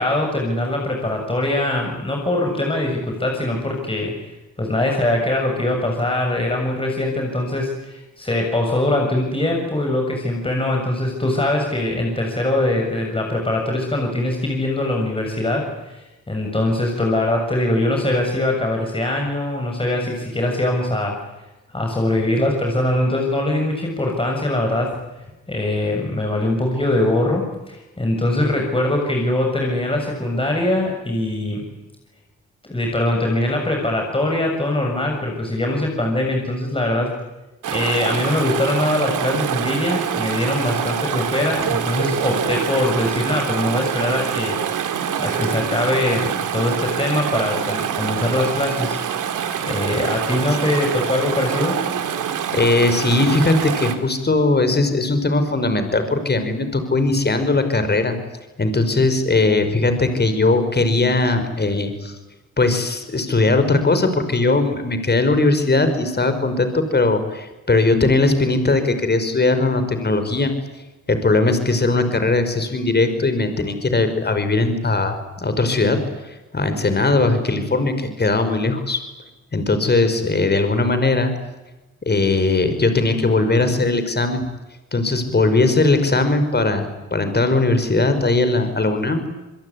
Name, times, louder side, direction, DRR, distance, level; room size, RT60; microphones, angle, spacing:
voice 1, 0.0-4.2 4.6-21.2 21.7-25.0 25.5-31.6 32.6-37.1 37.7-44.6 44.8-44.9 45.2-49.0 49.7-51.8, left 1 dB, 15° left, 1 dB, 7.0 m, -22 dB
Chatter / Stream, 37.6-53.9, right 8 dB, 75° right, 2.8 m, -25 dB
voice 2, 52.5-58.2 58.6-62.2 62.6-70.5 71.1-76.0 76.2-79.0 79.5-81.3 82.0-84.4 84.9-89.3, left 2 dB, 30° left, 9 dB, 5.5 m, -19 dB
26.5 x 22.0 x 9.8 m, 1.1 s
cardioid pair, 70°, 31 cm